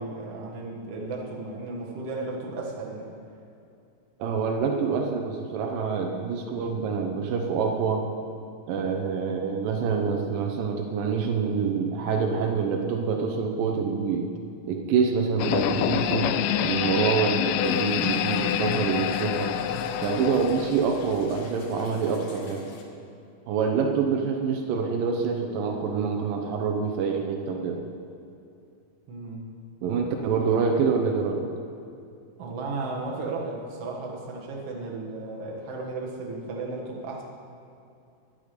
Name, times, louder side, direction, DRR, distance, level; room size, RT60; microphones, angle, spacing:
voice 1, 0.0-3.1 29.1-29.4 32.4-37.2, right 3 dB, 50° right, -2 dB, 2.4 m, -34 dB
voice 2, 4.2-8.1 8.7-14.3 14.7-16.3 16.6-19.5 20.0-22.7 23.5-27.8 29.8-31.4, right 5 dB, 85° right, 3 dB, 2.5 m, -26 dB
sound 1, 15.4-21.5, left 10 dB, 80° left, 2.1 m, -27 dB
sound 2, 17.6-22.8, left 3 dB, 60° left, 1.6 m, -45 dB
12.0 x 10.5 x 5.1 m, 2.6 s
omnidirectional pair, 3.9 m